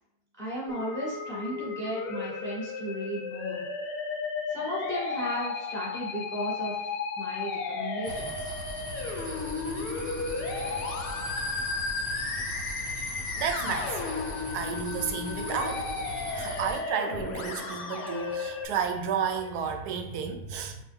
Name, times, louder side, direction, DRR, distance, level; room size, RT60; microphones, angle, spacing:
voice 1, 0.4-3.6 4.5-8.5, equal, 25° right, -7 dB, 1.5 m, -35 dB
Musical instrument, 0.7-18.7, left 4 dB, 90° left, 1.2 m, -34 dB
sound 1, 8.0-16.8, equal, 5° right, 1.0 m, -39 dB
voice 2, 13.4-14.0 14.5-15.9 16.3-20.8, right 6 dB, 85° right, 6 dB, 1.1 m, -32 dB
5.2 x 2.1 x 3.5 m, 0.83 s
omnidirectional pair, 1.7 m